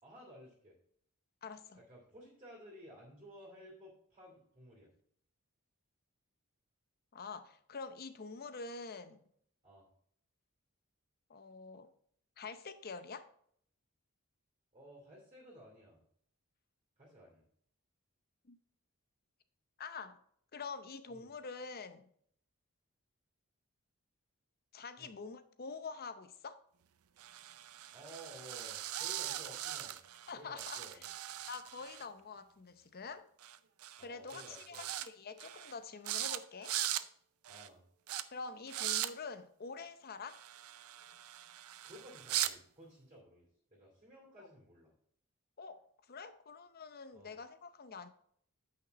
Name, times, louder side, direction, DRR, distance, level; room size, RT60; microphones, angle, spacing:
voice 1, 0.0-0.8 1.7-4.9 9.6-9.9 14.7-16.0 17.0-17.5 21.1-21.3 25.0-25.1 27.9-29.9 30.4-31.0 34.0-34.9 37.5-37.8 41.8-44.9 47.1-47.3, equal, 25° right, -4 dB, 2.8 m, -55 dB
voice 2, 1.4-1.8 7.1-9.2 11.3-11.9 12.4-13.3 18.4-18.6 19.8-20.2 20.5-22.0 24.7-26.6 30.3-30.8 31.5-33.3 34.0-36.8 38.3-40.4 44.4-44.5 45.6-48.1, left 4 dB, 45° left, 11 dB, 0.7 m, -46 dB
sound 1, 27.2-30.3 30.6-32.0 33.4-33.6 33.8-34.0 34.3-35.1 35.4-35.7 36.0-36.4 36.6-37.0 37.4-37.7 38.1-38.2 38.7-39.1 40.3-42.5, right 13 dB, 80° right, 0.5 m, -40 dB
9.2 x 5.9 x 4.1 m, 0.65 s
head